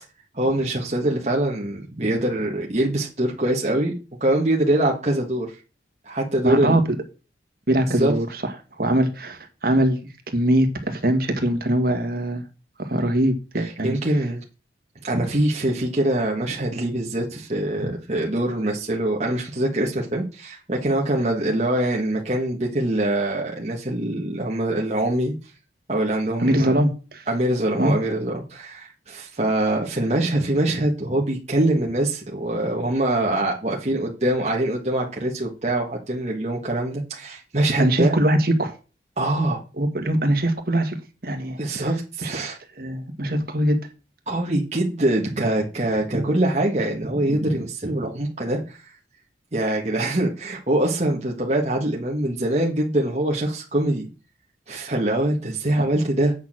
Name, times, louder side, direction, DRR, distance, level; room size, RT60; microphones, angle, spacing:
voice 1, 0.3-3.9 4.2-5.6 6.0-6.8 8.0-8.1 13.6-14.4 15.0-25.3 25.9-26.8 27.3-38.2 39.2-39.6 41.6-42.6 44.3-48.8 49.5-54.1 54.7-56.3, right 1 dB, 40° right, -1 dB, 1.5 m, -23 dB
voice 2, 6.4-6.8 7.7-10.0 10.3-12.4 12.8-13.9 26.4-27.2 27.8-27.9 37.8-38.7 39.8-41.0 41.2-41.9 42.2-42.3 42.8-43.8, right 1 dB, 55° right, 5 dB, 1.8 m, -22 dB
8.2 x 6.6 x 6.2 m, 0.33 s
head